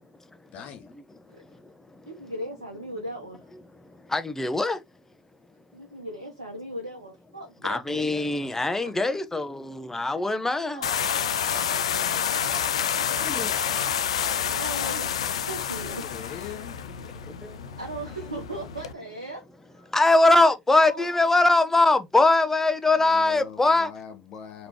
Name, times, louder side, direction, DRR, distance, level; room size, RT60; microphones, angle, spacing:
voice 1, 0.5-0.9 15.8-16.8 23.0-24.7, left 8 dB, 50° left, 0.9 m, -42 dB
voice 2, 2.0-3.4 5.7-8.3 10.7-11.5 12.9-14.0 14.3-15.1 15.4-16.1 17.8-19.4 19.7-20.0 20.8-21.1, right 1 dB, 85° right, 0.7 m, -38 dB
voice 3, 4.1-4.8 7.6-10.8 13.2-13.5 17.4-17.5 19.9-23.9, left 2 dB, 10° left, 0.8 m, -22 dB
sound 1, 10.8-18.9, left 8 dB, 75° left, 0.4 m, -28 dB
5.1 x 3.0 x 2.9 m
figure-of-eight pair, 60°, 3 cm